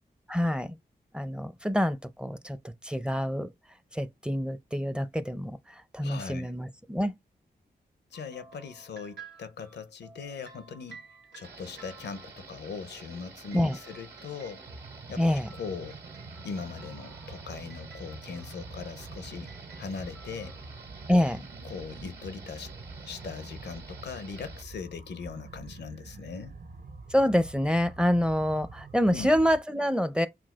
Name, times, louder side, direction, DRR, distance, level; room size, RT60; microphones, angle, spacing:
voice 1, 0.3-0.8 1.1-3.5 3.9-7.1 13.5-13.8 15.2-15.5 21.1-21.5 27.1-30.3, equal, 5° right, 0.5 m, -27 dB
voice 2, 6.0-6.5 8.1-11.0 11.3-14.6 15.1-16.0 16.4-19.5 19.8-20.6 21.7-22.7 23.1-26.5 29.1-29.3, left 5 dB, 75° left, 0.5 m, -40 dB
sound 1, 8.1-12.5 13.5-21.5, right 5 dB, 85° right, 1.3 m, -54 dB
sound 2, 11.4-24.6, right 4 dB, 65° right, 1.6 m, -49 dB
sound 3, 14.6-29.6, right 3 dB, 50° right, 0.8 m, -46 dB
5.9 x 2.3 x 2.3 m
cardioid pair, 50°, 18 cm